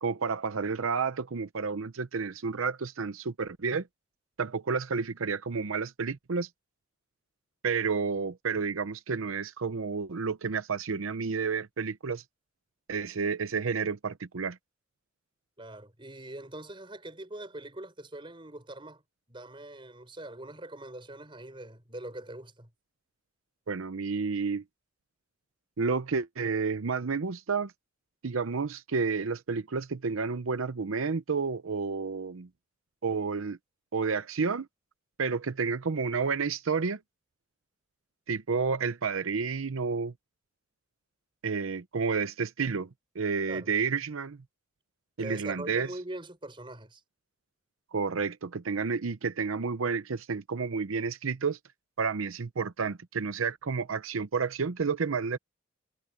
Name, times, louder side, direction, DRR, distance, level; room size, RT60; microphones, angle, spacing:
voice 1, 0.0-3.9 4.4-6.5 7.6-12.2 12.9-14.6 23.7-24.6 25.8-27.7 28.2-32.5 33.0-33.6 33.9-34.7 35.2-37.0 38.3-40.1 41.4-42.9 43.1-44.4 45.2-45.9 47.9-51.6 52.0-55.4, right 5 dB, 90° right, 0.7 m, -30 dB
voice 2, 15.6-19.0 19.3-22.7 43.5-43.7 45.2-47.0, right 1 dB, 25° right, 5.5 m, -43 dB
head